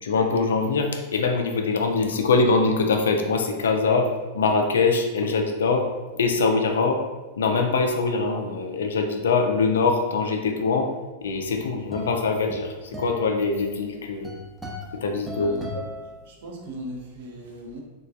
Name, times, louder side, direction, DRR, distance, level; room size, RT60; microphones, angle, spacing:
voice 1, 0.0-7.0 7.4-10.9 11.2-14.3 14.9-15.5, left 4 dB, 65° left, 4 dB, 0.3 m, -23 dB
sound 1, 11.3-16.7, left 1 dB, 5° right, 0.5 m, -38 dB
voice 2, 15.3-17.8, right 1 dB, 55° right, 0 dB, 0.5 m, -38 dB
3.1 x 2.3 x 2.3 m, 1.2 s
figure-of-eight pair, 90°, 0 cm